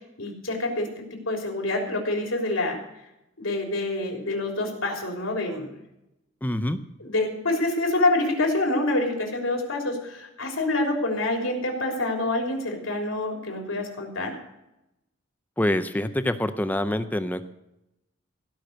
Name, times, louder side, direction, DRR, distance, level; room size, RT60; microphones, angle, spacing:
voice 1, 0.0-2.8 3.4-5.7 7.0-14.3, left 2 dB, 90° left, 1 dB, 3.5 m, -27 dB
voice 2, 6.4-6.8 15.6-17.5, left 1 dB, 10° left, 11 dB, 0.5 m, -26 dB
16.5 x 6.0 x 7.9 m, 0.87 s
head